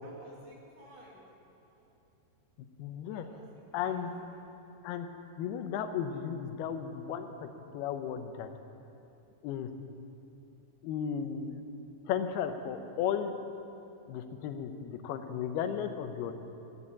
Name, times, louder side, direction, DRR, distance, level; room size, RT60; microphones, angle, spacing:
voice 1, 0.0-1.2 1.6-1.9 3.1-4.5, right 1 dB, 60° right, -4 dB, 3.8 m, -56 dB
voice 2, 2.8-3.3 3.7-4.1 4.8-5.1 5.4-7.5 7.7-8.5 9.4-9.7 10.8-11.6 12.1-13.3 14.1-16.3, left 8 dB, 85° left, 8 dB, 2.8 m, -34 dB
14.0 x 8.9 x 8.4 m, 2.9 s
omnidirectional pair, 4.5 m